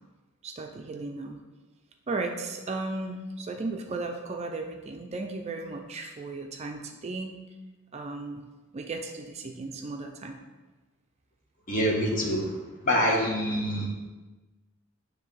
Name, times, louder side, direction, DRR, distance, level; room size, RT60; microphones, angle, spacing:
voice 1, 0.4-1.4 2.1-7.4 7.9-8.4 8.7-10.4 13.8-13.9, right 3 dB, 30° right, 3 dB, 0.4 m, -35 dB
voice 2, 11.7-12.6 12.8-13.9, equal, 40° left, -2 dB, 1.2 m, -25 dB
9.0 x 3.2 x 3.2 m, 1.2 s
head